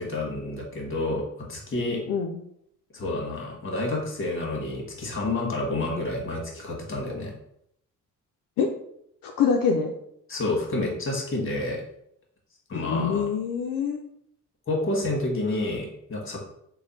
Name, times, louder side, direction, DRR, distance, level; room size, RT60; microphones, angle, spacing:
voice 1, 0.0-2.0 2.9-7.3 10.3-11.8 12.7-13.3 14.7-16.5, left 2 dB, 35° left, 0 dB, 1.3 m, -29 dB
voice 2, 9.2-9.9 12.7-14.0, left 6 dB, 75° left, 2 dB, 0.5 m, -25 dB
3.2 x 2.2 x 4.0 m, 0.73 s
supercardioid pair, 65°, 34 cm